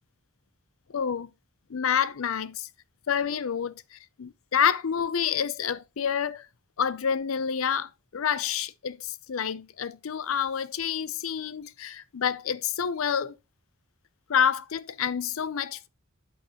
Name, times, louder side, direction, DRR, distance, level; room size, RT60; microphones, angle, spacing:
voice 1, 0.9-1.3 1.7-2.7 3.1-6.5 6.8-13.4 14.3-15.9, left 8 dB, 70° left, 0.5 m, -28 dB
9.3 x 5.8 x 2.9 m
head